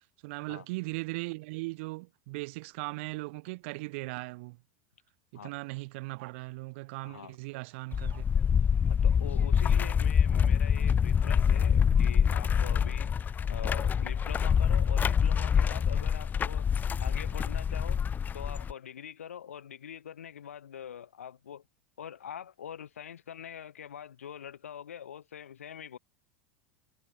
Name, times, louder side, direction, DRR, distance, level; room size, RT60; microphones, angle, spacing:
voice 1, 0.2-4.6 5.4-8.2 8.5-8.6 9.7-9.9, right 25 dB, 60° right, 1.3 m, -38 dB
voice 2, 7.0-7.4 8.9-13.1 13.5-16.7 17.0-18.0 18.3-21.6 22.0-26.0, left 9 dB, 80° left, 4.7 m, -44 dB
sound 1, 7.9-18.7, left 7 dB, 25° left, 0.6 m, -26 dB
hypercardioid pair, 90°, 7 cm